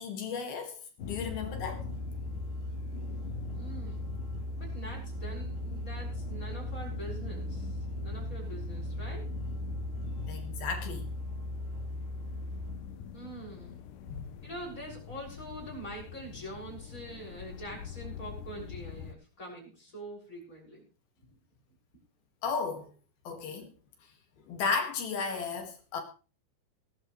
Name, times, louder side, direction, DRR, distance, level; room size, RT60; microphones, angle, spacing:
voice 1, 0.0-1.9 10.3-11.1 14.1-14.2 22.4-22.9 23.3-23.7 24.5-26.0, left 5 dB, 60° left, 3.6 m, -34 dB
sound 1, 1.0-19.1, left 8 dB, 90° left, 1.8 m, -44 dB
Musical instrument, 1.0-13.0, equal, 55° right, 3.5 m, -38 dB
voice 2, 3.5-4.1 4.6-9.3 13.1-13.9 14.4-20.9, right 1 dB, 15° left, 6.7 m, -44 dB
19.5 x 12.0 x 3.2 m
omnidirectional pair, 5.1 m